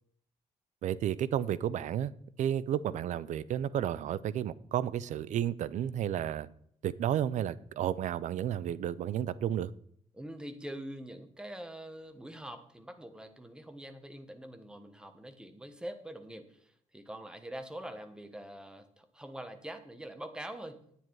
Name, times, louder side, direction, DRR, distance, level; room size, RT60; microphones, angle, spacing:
voice 1, 0.8-2.1 2.4-6.5 6.8-9.7, right 10 dB, 85° right, 0.6 m, -32 dB
voice 2, 10.1-20.8, right 1 dB, 5° right, 1.2 m, -44 dB
9.9 x 9.1 x 4.7 m
cardioid pair, 120°, 12 cm